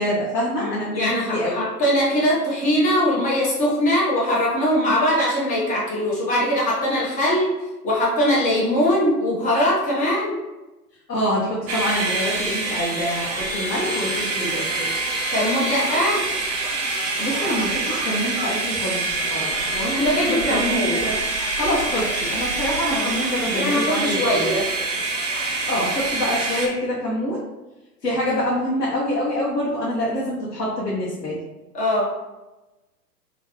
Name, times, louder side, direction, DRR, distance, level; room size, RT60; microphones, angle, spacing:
voice 1, 0.0-1.6 11.1-14.9 17.2-21.1 21.6-24.5 25.7-27.4 28.0-31.4, equal, 85° left, -6 dB, 1.1 m, -26 dB
voice 2, 0.6-7.5 7.8-10.4 15.3-16.2 19.9-21.0 22.9-23.1 23.5-24.6 31.7-32.1, equal, 15° left, -6 dB, 1.2 m, -21 dB
sound 1, 11.7-26.7, right 3 dB, 25° right, 0.7 m, -25 dB
4.0 x 3.0 x 3.0 m, 1.1 s
figure-of-eight pair, 115°, 49 cm